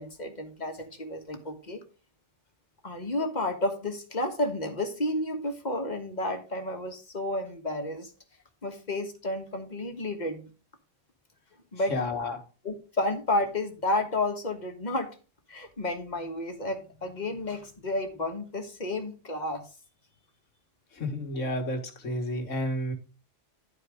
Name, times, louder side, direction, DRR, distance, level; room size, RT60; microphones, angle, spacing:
voice 1, 0.0-1.8 2.8-8.1 8.6-10.5 11.7-12.0 12.6-15.1 15.5-19.6, left 1 dB, 35° left, 5 dB, 1.5 m, -31 dB
voice 2, 11.9-12.4 20.9-22.9, left 1 dB, 80° left, 4 dB, 2.0 m, -31 dB
11.5 x 4.7 x 4.9 m, 0.34 s
omnidirectional pair, 1.3 m